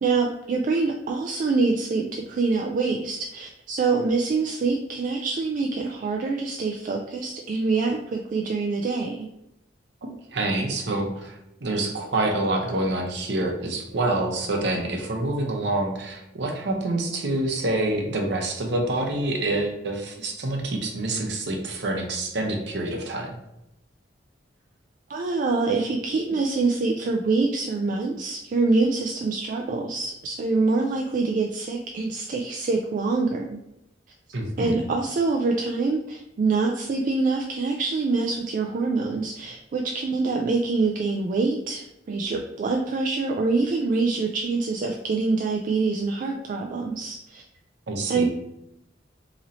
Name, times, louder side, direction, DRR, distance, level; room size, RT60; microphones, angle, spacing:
voice 1, 0.0-9.3 25.1-33.6 34.6-47.4 48.1-48.3, right 3 dB, 45° right, 1 dB, 0.3 m, -25 dB
voice 2, 10.3-23.4 34.3-34.8 47.9-48.3, right 2 dB, 65° right, 2 dB, 0.7 m, -27 dB
3.0 x 2.6 x 4.1 m, 0.86 s
head